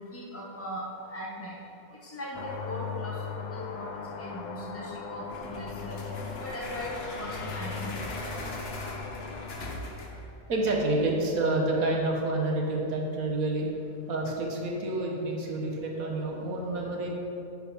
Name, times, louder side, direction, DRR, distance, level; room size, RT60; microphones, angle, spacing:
voice 1, 0.0-1.6 2.0-3.9 4.2-6.0 6.4-7.9, equal, 15° left, -4 dB, 0.5 m, -39 dB
sound 1, 2.3-9.5, left 5 dB, 85° left, 0.4 m, -39 dB
sound 2, 5.3-10.3, left 2 dB, 50° left, 1.1 m, -40 dB
voice 2, 8.2-8.8 10.5-13.7 14.1-17.1, right 2 dB, 75° right, -1 dB, 1.7 m, -29 dB
10.5 x 4.1 x 5.7 m, 2.8 s
omnidirectional pair, 1.5 m